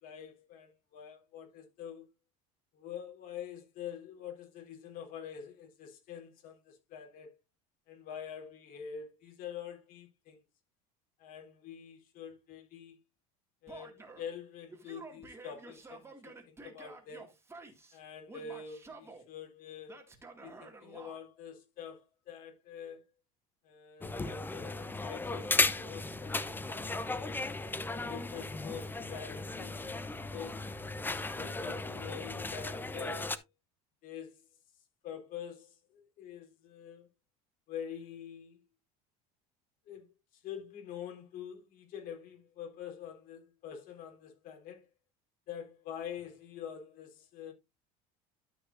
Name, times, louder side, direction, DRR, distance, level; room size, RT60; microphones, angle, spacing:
voice 1, 0.0-2.1 2.7-7.3 7.9-10.4 11.2-13.0 13.6-17.3 17.9-20.1 20.4-23.0 23.6-27.5 28.1-30.6 31.3-33.4 34.0-34.5 35.0-37.1 37.7-38.6 39.9-44.9 45.5-47.5, left 8 dB, 60° left, 3.7 m, -46 dB
Male speech man speaking / Yell, 13.7-14.3 14.7-18.0 18.3-19.2 19.9-21.2, right 3 dB, 15° right, 2.2 m, -51 dB
sound 1, 24.0-33.4, left 3 dB, 10° left, 0.8 m, -35 dB
12.0 x 6.0 x 2.6 m
supercardioid pair, 105°, 17 cm